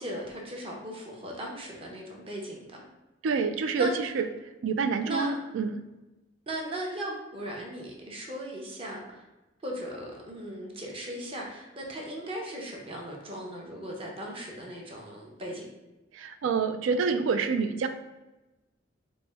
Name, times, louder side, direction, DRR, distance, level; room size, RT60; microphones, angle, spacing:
voice 1, 0.0-2.8 3.8-3.9 5.1-5.4 6.5-9.2 9.6-15.7, right 1 dB, 30° right, -1 dB, 0.7 m, -38 dB
voice 2, 3.2-3.9 4.1-4.2 4.6-5.7 16.2-17.9, right 5 dB, 90° right, 9 dB, 0.3 m, -27 dB
4.1 x 2.1 x 3.3 m, 1.0 s
head